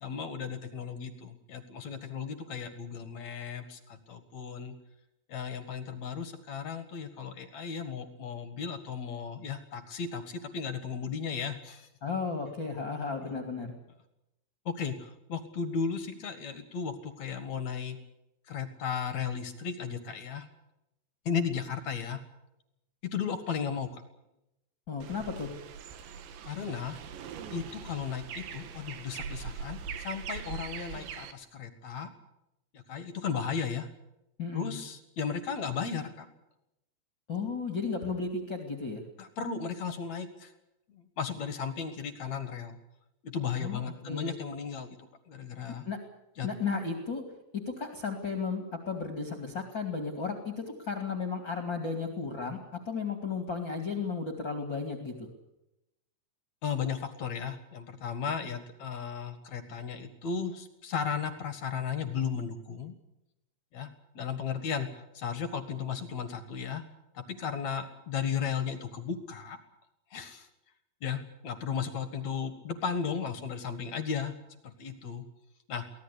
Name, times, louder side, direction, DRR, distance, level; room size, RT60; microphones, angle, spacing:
voice 1, 0.0-4.8 5.3-11.9 14.7-18.0 18.5-20.5 21.3-22.2 23.1-24.0 26.4-27.0 27.5-32.1 32.7-33.9 34.5-36.3 39.2-40.5 41.2-42.8 43.2-45.0 45.3-45.9 46.4-46.5 56.6-62.9 63.7-63.9 64.2-66.8 67.1-69.6 70.1-70.5 71.0-74.3 74.6-75.3 75.7-75.8, left 6 dB, 55° left, 10 dB, 2.4 m, -35 dB
voice 2, 12.0-13.7 24.9-25.5 34.4-34.7 37.3-39.0 43.6-44.3 45.8-46.0 46.4-47.2 47.5-52.6 52.8-55.3, left 4 dB, 35° left, 5 dB, 2.4 m, -34 dB
sound 1, 25.0-31.3, right 7 dB, 85° right, 4.0 m, -41 dB
24.0 x 18.0 x 8.4 m, 0.87 s
omnidirectional pair, 5.0 m